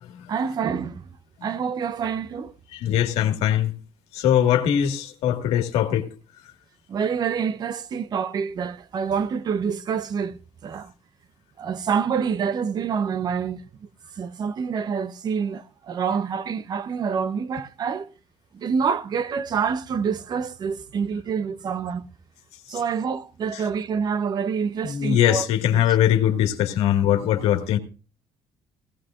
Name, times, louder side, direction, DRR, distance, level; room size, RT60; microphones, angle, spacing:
voice 1, 0.3-1.0 1.4-2.5 6.9-10.9 11.6-13.6 14.2-18.1 18.5-22.0 22.7-25.5 25.7-25.8, right 6 dB, 40° right, 0.9 m, -27 dB
voice 2, 2.7-3.7 4.1-6.1 24.8-27.8, left 10 dB, 80° left, 1.8 m, -21 dB
17.0 x 14.5 x 2.5 m
cardioid pair, 135°, 11 cm